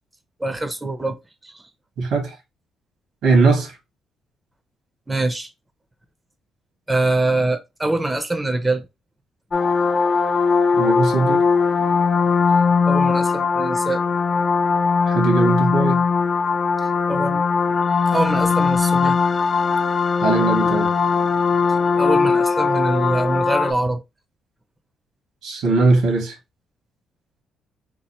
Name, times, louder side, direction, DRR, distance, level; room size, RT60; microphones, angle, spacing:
voice 1, 0.4-1.2 1.4-1.6 5.1-5.5 6.9-8.8 12.9-14.0 17.1-17.4 18.1-19.2 22.0-24.0, right 2 dB, 10° right, 0.5 m, -23 dB
voice 2, 2.0-2.4 3.2-3.8 10.7-11.4 15.1-16.0 20.2-20.9 25.4-26.4, right 3 dB, 80° right, 1.3 m, -19 dB
sound 1, 9.5-23.7, left 5 dB, 35° left, 0.4 m, -19 dB
3.0 x 2.4 x 4.1 m
cardioid pair, 90°, 0 cm